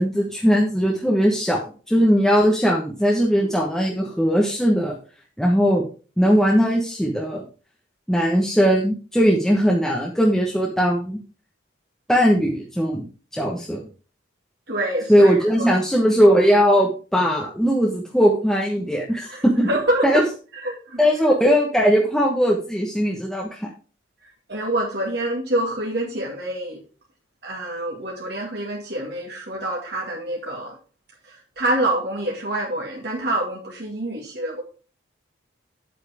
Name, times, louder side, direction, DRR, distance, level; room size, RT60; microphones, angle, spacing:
voice 1, 0.0-4.9 5.4-5.8 6.2-7.4 8.1-11.2 12.1-13.1 13.3-13.8 15.1-19.7 20.0-20.2 21.0-23.7, equal, ahead, -2 dB, 1.1 m, -19 dB
voice 2, 14.7-15.8 19.3-20.2 20.6-21.0 24.5-26.8 27.4-30.7 31.3-34.6, right 1 dB, 55° right, -2 dB, 2.2 m, -26 dB
9.3 x 8.4 x 3.5 m, 0.36 s
head